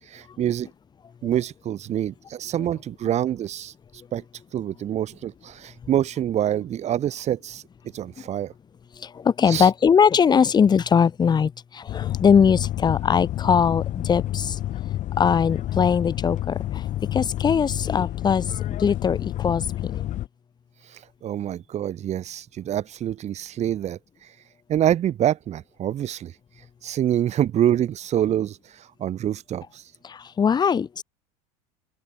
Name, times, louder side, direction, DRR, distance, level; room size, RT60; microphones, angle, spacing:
voice 1, 0.1-0.7 1.2-3.7 4.1-4.2 4.5-7.6 7.9-8.5 9.5-9.7 20.9-24.0 24.7-26.3 26.8-29.8, right 11 dB, 40° right, 4.1 m, -26 dB
voice 2, 9.0-14.6 15.2-16.8 17.1-20.0 30.0-31.0, left 7 dB, 25° left, 1.3 m, -21 dB
sound 1, 11.9-20.3, left 13 dB, 45° left, 3.2 m, -29 dB
open air
supercardioid pair, 105°, 18 cm